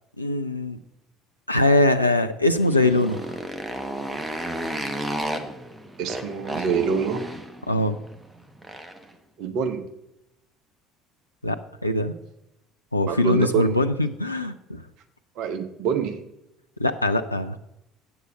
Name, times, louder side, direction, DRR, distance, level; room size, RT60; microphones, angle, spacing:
voice 1, 0.2-0.8 1.5-3.4 7.7-8.0 11.4-12.1 12.9-14.8 16.8-17.6, left 2 dB, 90° left, 7 dB, 0.3 m, -22 dB
Motorcycle, 2.5-9.1, right 1 dB, 10° right, 1.2 m, -33 dB
Keyboard (musical), 2.6-5.4, right 1 dB, 45° left, 3.4 m, -44 dB
voice 2, 6.0-7.2 9.4-9.8 13.1-13.8 15.4-16.2, right 6 dB, 55° right, 6 dB, 1.1 m, -25 dB
8.1 x 7.2 x 7.3 m, 0.86 s
figure-of-eight pair, 60°, 0 cm